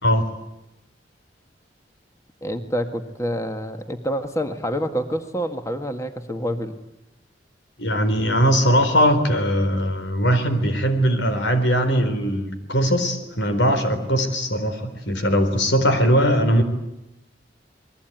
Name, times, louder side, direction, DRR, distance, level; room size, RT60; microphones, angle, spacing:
voice 1, 2.4-6.7, equal, 15° left, 7 dB, 1.8 m, -27 dB
voice 2, 7.8-16.6, equal, 90° left, 9 dB, 4.1 m, -20 dB
27.5 x 21.5 x 9.3 m, 0.89 s
head